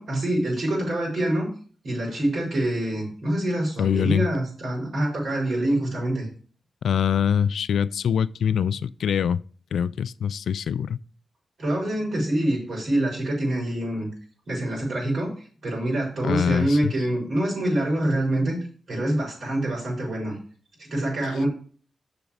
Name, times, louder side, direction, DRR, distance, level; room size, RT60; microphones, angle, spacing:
voice 1, 0.0-1.5 1.8-6.3 11.6-14.1 14.5-15.3 15.6-18.6 18.9-20.4 20.8-21.5, right 1 dB, 65° right, 5.0 m, -25 dB
voice 2, 3.8-4.3 6.8-9.4 9.7-11.0 16.2-16.9, left 8 dB, 90° left, 0.3 m, -24 dB
7.0 x 6.0 x 5.0 m
wide cardioid pair, 115°, 0 cm